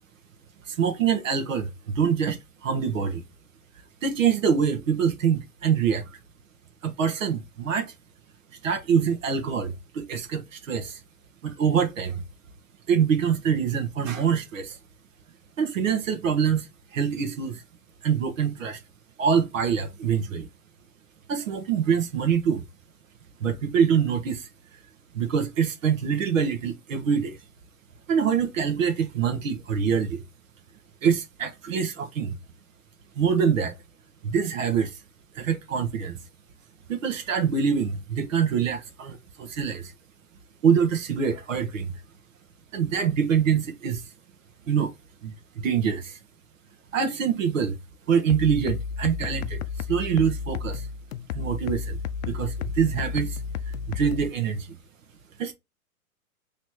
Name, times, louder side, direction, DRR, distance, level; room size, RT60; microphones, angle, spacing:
voice 1, 0.7-3.2 4.0-6.1 6.8-7.9 8.6-11.0 11.4-12.2 12.9-14.8 15.6-17.6 18.0-18.8 19.2-20.5 21.3-22.6 23.4-24.5 25.1-27.4 28.1-30.2 31.0-32.3 33.2-33.7 34.2-35.0 35.3-36.2 36.9-39.9 40.6-41.9 42.7-44.0 44.7-44.9 45.2-46.2 46.9-47.8 48.1-49.6 49.9-50.9 51.3-52.0 52.2-53.4 53.7-54.7 55.4-55.5, right 7 dB, 60° right, 1.2 m, -25 dB
sound 1, 48.3-54.3, left 6 dB, 60° left, 0.6 m, -32 dB
3.2 x 3.0 x 4.2 m
hypercardioid pair, 130°, 45 cm